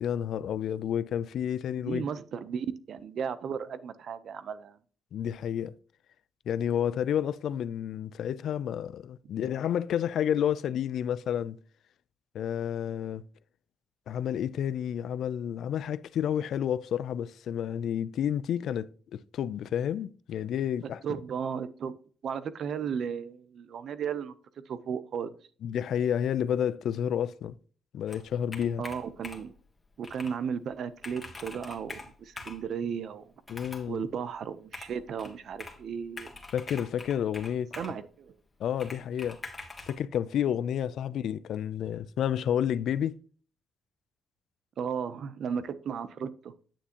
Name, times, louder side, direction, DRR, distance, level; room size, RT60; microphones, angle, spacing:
voice 1, 0.0-2.0 5.1-5.7 6.5-11.6 12.3-13.2 14.1-21.0 25.6-27.6 27.9-28.8 33.5-34.0 36.5-37.8 38.6-39.4 39.9-43.2, left 9 dB, 70° left, 0.4 m, -30 dB
voice 2, 1.8-4.8 20.8-22.0 22.2-24.3 24.7-25.3 28.8-29.5 30.0-33.3 33.9-36.4 37.8-38.4 44.8-46.5, right 7 dB, 65° right, 0.6 m, -35 dB
Computer keyboard, 28.1-29.6 30.0-30.4 30.7-30.8 31.0-32.6 33.4-33.9 34.7-35.8 36.2-38.0 38.8-40.0, left 3 dB, 20° left, 1.8 m, -44 dB
8.9 x 7.0 x 2.9 m
cardioid pair, 90°, 0 cm